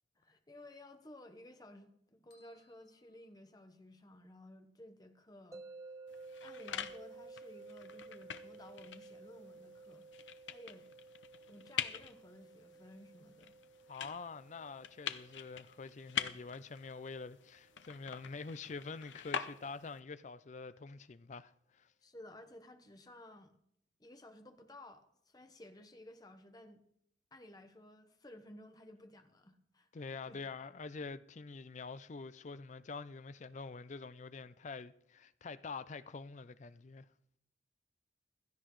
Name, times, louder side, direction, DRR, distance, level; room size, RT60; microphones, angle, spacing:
voice 1, 0.2-5.6 6.4-10.1 10.5-10.9 11.5-13.5 22.0-23.6 24.0-26.8 27.3-30.4, left 1 dB, 20° left, 1.0 m, -55 dB
sound 1, 2.3-4.1, left 2 dB, 55° left, 2.1 m, -73 dB
sound 2, 5.5-18.6, right 3 dB, 20° right, 0.5 m, -55 dB
sound 3, 6.1-20.0, left 8 dB, 80° left, 0.7 m, -45 dB
voice 2, 13.9-21.9 29.9-37.1, left 4 dB, 40° left, 0.4 m, -46 dB
16.0 x 13.5 x 3.1 m
head